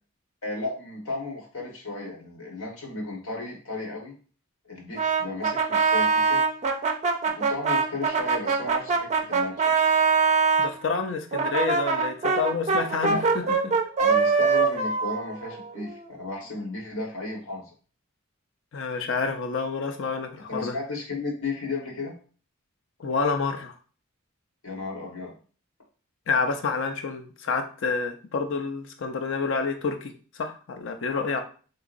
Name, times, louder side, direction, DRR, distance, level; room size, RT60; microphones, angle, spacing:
voice 1, 0.4-4.1 4.6-6.4 7.2-9.7 13.0-13.5 14.0-17.7 20.5-22.2 24.6-25.3, left 3 dB, 90° left, -1 dB, 1.3 m, -34 dB
Brass instrument, 5.0-10.7 11.3-16.1, right 5 dB, 35° right, 0.4 m, -23 dB
voice 2, 10.6-13.7 18.7-20.8 23.0-23.7 26.3-31.4, left 4 dB, 60° left, 6 dB, 0.5 m, -28 dB
3.8 x 2.8 x 2.5 m, 0.40 s
head